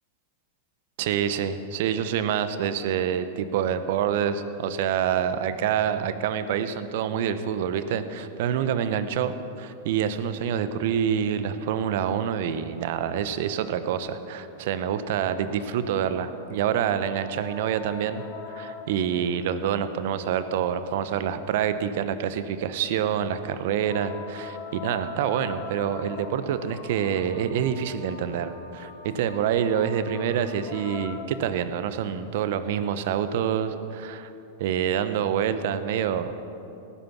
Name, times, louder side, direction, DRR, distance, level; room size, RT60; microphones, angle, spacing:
voice 1, 1.0-34.3 34.6-36.4, right 8 dB, 60° right, 12 dB, 0.9 m, -27 dB
sound 1, 14.5-19.3 23.6-31.8 33.2-33.3, left 5 dB, 40° left, 2.4 m, -43 dB
18.0 x 10.0 x 6.1 m, 2.8 s
hypercardioid pair, 100°, 0 cm